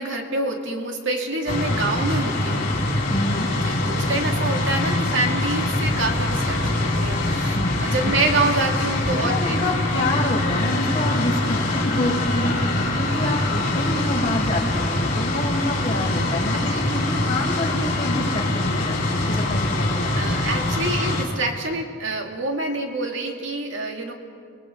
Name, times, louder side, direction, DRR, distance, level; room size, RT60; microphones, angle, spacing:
voice 1, 0.0-2.7 3.6-9.6 16.5-16.9 19.2-19.3 20.2-24.1, right 2 dB, 70° right, 2 dB, 2.2 m, -27 dB
sound 1, 1.5-21.2, left 2 dB, 45° left, 3.4 m, -23 dB
voice 2, 3.1-3.5 7.5-7.8 9.1-20.4, left 1 dB, 25° left, -5 dB, 5.9 m, -27 dB
30.0 x 21.0 x 5.1 m, 2.1 s
head